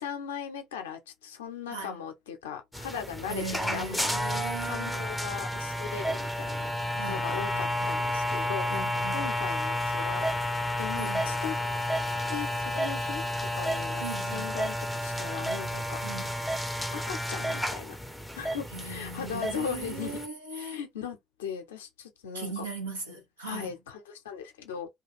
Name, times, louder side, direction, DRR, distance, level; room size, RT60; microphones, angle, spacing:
voice 1, 0.0-3.4 3.7-6.7 7.1-10.3 10.8-11.6 12.3-16.0 16.9-18.0 18.3-20.2 20.5-22.7 23.4-24.9, left 7 dB, 75° left, 0.6 m, -38 dB
sound 1, 2.7-20.3, left 1 dB, ahead, 0.5 m, -31 dB
voice 2, 3.3-5.1 6.9-7.9 8.7-9.3 11.0-11.3 14.0-14.5 16.0-16.3 18.7-20.8 22.3-23.7, right 3 dB, 85° right, 0.7 m, -39 dB
2.4 x 2.3 x 3.1 m
figure-of-eight pair, 55°, 0 cm